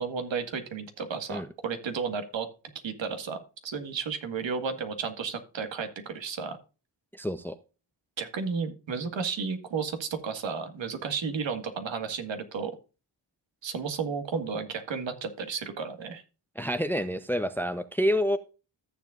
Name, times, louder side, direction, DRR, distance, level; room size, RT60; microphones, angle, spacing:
voice 1, 0.0-2.5 2.8-6.6 8.2-12.7 13.6-16.2, right 5 dB, 75° right, 7 dB, 1.9 m, -33 dB
voice 2, 7.1-7.6 16.6-18.4, equal, 5° left, 11 dB, 0.7 m, -28 dB
14.5 x 7.2 x 2.5 m, 0.32 s
cardioid pair, 75°, 45 cm